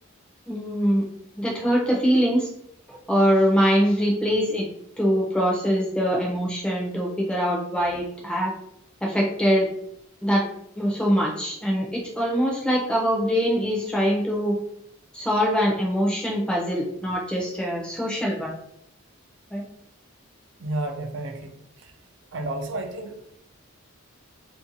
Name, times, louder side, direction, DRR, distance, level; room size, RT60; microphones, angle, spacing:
voice 1, 0.5-1.0 1.4-2.5 2.9-4.6 5.0-8.5 9.0-9.7 10.2-10.5 10.8-14.6 15.1-18.5 19.5-19.6, equal, 5° left, -3 dB, 0.5 m, -23 dB
voice 2, 20.6-21.5 22.3-23.2, right 2 dB, 60° right, 4 dB, 0.4 m, -31 dB
2.6 x 2.2 x 2.5 m, 0.73 s
head